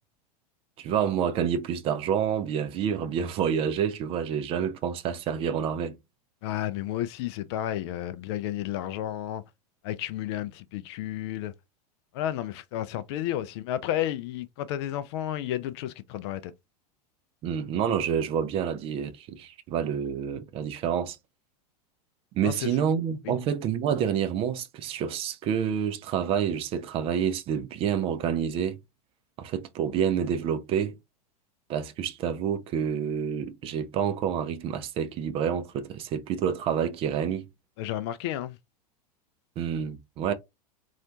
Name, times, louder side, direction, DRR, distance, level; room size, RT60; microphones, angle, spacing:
voice 1, 0.8-6.0 17.4-21.2 22.3-28.8 29.4-30.9 31.7-37.5 39.6-40.3, right 8 dB, 25° right, 0.5 m, -28 dB
voice 2, 6.4-9.4 9.8-11.5 12.1-16.5 22.4-22.7 23.3-23.4 37.8-38.6, left 12 dB, 40° left, 0.4 m, -32 dB
4.2 x 2.4 x 2.8 m
figure-of-eight pair, 90°, 21 cm